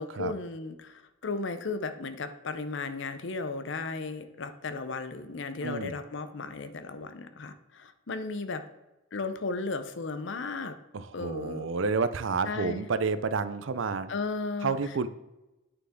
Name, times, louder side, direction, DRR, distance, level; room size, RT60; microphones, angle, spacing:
voice 1, 0.0-8.6 9.1-10.8 11.1-11.7 12.5-12.9 14.1-14.7, left 3 dB, 65° left, 10 dB, 0.7 m, -35 dB
voice 2, 5.6-5.9 10.9-14.1 14.6-15.1, right 4 dB, 70° right, 13 dB, 0.5 m, -30 dB
9.0 x 6.7 x 3.7 m, 0.99 s
head